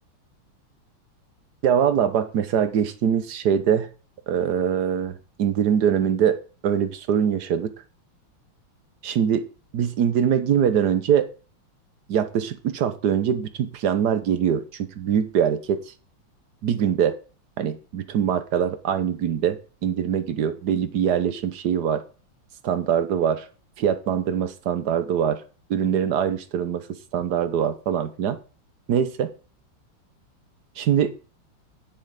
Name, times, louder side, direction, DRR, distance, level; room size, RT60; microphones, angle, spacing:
voice 1, 1.6-3.9 4.3-5.1 5.4-6.4 6.6-7.7 9.0-9.4 9.7-11.3 12.1-15.8 16.6-17.1 17.6-22.0 22.6-23.4 23.8-25.4 25.7-26.8 27.1-28.4 28.9-29.3 30.8-31.1, right 8 dB, 55° right, 12 dB, 1.3 m, -23 dB
9.6 x 7.7 x 5.2 m, 0.36 s
omnidirectional pair, 2.4 m